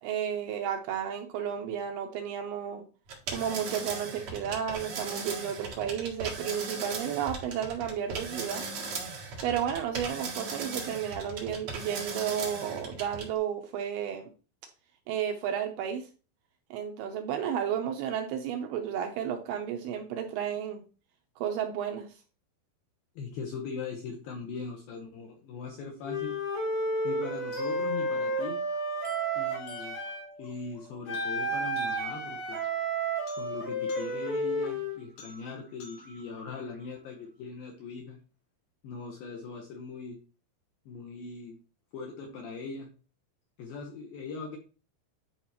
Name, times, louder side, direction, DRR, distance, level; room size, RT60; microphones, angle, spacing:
voice 1, 0.0-2.8 3.3-8.7 9.4-14.3 15.1-16.1 16.7-20.8 21.4-22.1, right 9 dB, 80° right, 4 dB, 2.4 m, -32 dB
sound 1, 3.1-13.4, right 4 dB, 50° right, 2.4 m, -37 dB
voice 2, 23.2-26.4 27.0-28.7 29.4-30.0 30.4-32.6 33.4-38.2 38.8-40.2 40.9-41.6 41.9-42.9 43.6-44.6, left 4 dB, 75° left, 2 dB, 2.3 m, -40 dB
Wind instrument woodwind instrument, 26.0-30.3 31.1-35.0, right 1 dB, 25° left, 2.6 m, -31 dB
sound 2, 27.5-37.5, equal, 55° left, 3.1 m, -51 dB
11.0 x 4.8 x 2.9 m, 0.34 s
omnidirectional pair, 5.0 m